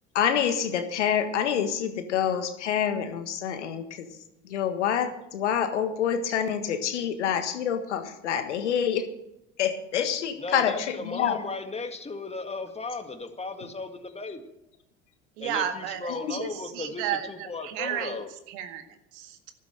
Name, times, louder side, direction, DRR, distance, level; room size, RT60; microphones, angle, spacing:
voice 1, 0.1-4.1 4.4-9.0 9.6-11.4 16.1-16.4, left 8 dB, 80° left, 8 dB, 1.6 m, -27 dB
voice 2, 10.4-14.5 15.4-18.3, left 3 dB, 20° left, 7 dB, 2.1 m, -36 dB
voice 3, 15.4-18.2 18.5-19.5, right 10 dB, 70° right, 8 dB, 1.9 m, -33 dB
14.0 x 12.0 x 6.5 m, 0.88 s
hypercardioid pair, 65°, 35 cm